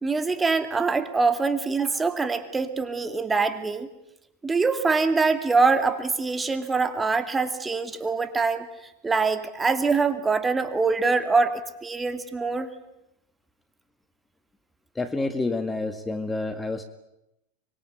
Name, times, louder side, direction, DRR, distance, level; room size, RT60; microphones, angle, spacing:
voice 1, 0.0-3.9 4.4-8.6 9.0-12.7, right 4 dB, 15° right, 10 dB, 2.5 m, -24 dB
voice 2, 15.0-16.8, left 3 dB, 15° left, 10 dB, 1.9 m, -28 dB
25.0 x 23.0 x 9.5 m, 0.86 s
hypercardioid pair, 100°, 0 cm